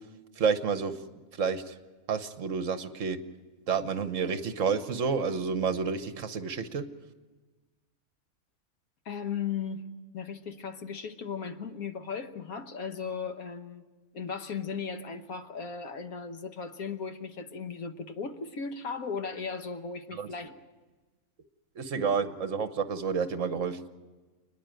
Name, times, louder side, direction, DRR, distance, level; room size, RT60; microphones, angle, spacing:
voice 1, 0.4-1.0 1.4-1.8 2.1-3.2 3.7-6.9 20.1-20.3 21.7-23.8, right 6 dB, 65° right, 1.3 m, -29 dB
voice 2, 9.0-9.9 10.1-13.9 14.1-20.5, left 6 dB, 90° left, 1.6 m, -36 dB
28.5 x 10.5 x 9.0 m
omnidirectional pair, 1.5 m